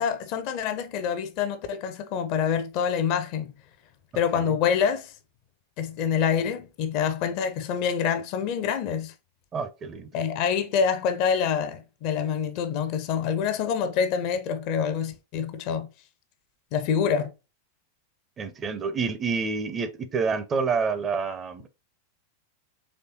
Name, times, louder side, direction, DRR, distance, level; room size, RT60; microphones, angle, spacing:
voice 1, 0.0-3.5 4.1-5.1 5.8-9.1 10.1-15.9 16.7-17.3, left 7 dB, 45° left, 0.6 m, -26 dB
voice 2, 9.5-10.1 18.4-21.7, right 5 dB, 25° right, 0.5 m, -28 dB
4.3 x 3.2 x 2.9 m
figure-of-eight pair, 90°, 0 cm